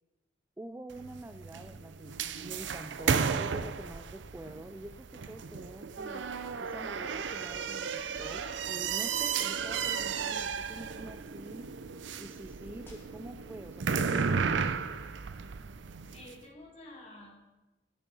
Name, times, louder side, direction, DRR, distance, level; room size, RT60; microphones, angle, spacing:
voice 1, 0.6-6.3 6.6-11.7 12.2-14.9, right 1 dB, 10° right, 8 dB, 0.3 m, -46 dB
sound 1, 0.9-16.3, right 6 dB, 70° right, 0.5 m, -34 dB
sound 2, 12.8-13.2 14.0-14.6 15.4-15.6, left 1 dB, 10° left, 2.2 m, -59 dB
voice 2, 16.0-17.3, left 1 dB, 35° left, -3 dB, 3.2 m, -50 dB
13.0 x 7.2 x 5.4 m, 1.1 s
head